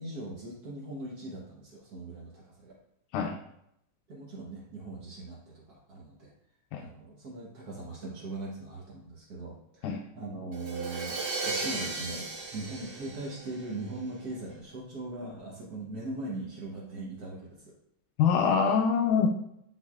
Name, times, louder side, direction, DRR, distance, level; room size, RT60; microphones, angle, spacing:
voice 1, 0.0-2.7 4.1-6.3 6.7-11.2 11.4-17.7, right 2 dB, 85° right, -5 dB, 0.8 m, -40 dB
Crash cymbal, 10.5-14.3, right 3 dB, 50° right, 2.7 m, -36 dB
voice 2, 18.2-19.3, left 6 dB, 85° left, 2 dB, 2.0 m, -24 dB
9.9 x 4.0 x 2.4 m, 0.76 s
omnidirectional pair, 3.4 m